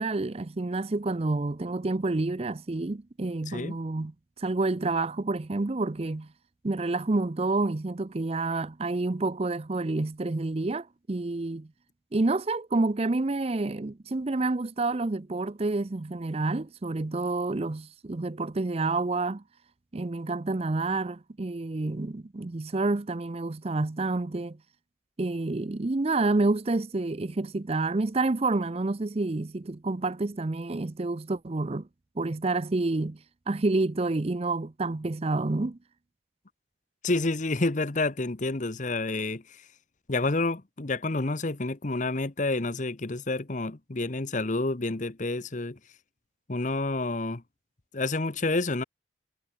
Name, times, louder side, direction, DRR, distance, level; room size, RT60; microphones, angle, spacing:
voice 1, 0.0-4.1 4.4-6.3 6.6-11.7 12.1-19.4 19.9-24.6 25.2-31.9 32.2-33.2 33.5-35.8, right 2 dB, 30° right, 0.5 m, -28 dB
voice 2, 3.5-3.8 37.0-39.6 40.1-45.8 46.5-47.4 47.9-48.8, left 2 dB, 40° left, 1.0 m, -29 dB
head